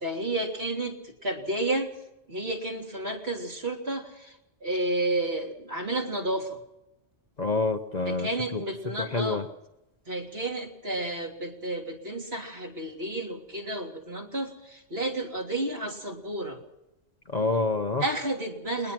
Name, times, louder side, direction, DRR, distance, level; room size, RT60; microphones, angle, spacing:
voice 1, 0.0-1.9 2.3-4.4 4.6-6.6 8.1-9.4 10.1-16.6 18.0-18.9, right 1 dB, 55° right, 1 dB, 3.5 m, -31 dB
voice 2, 7.4-8.6 9.1-9.4 17.3-18.0, left 3 dB, 35° left, 6 dB, 1.1 m, -27 dB
21.0 x 21.0 x 6.1 m, 0.89 s
omnidirectional pair, 1.3 m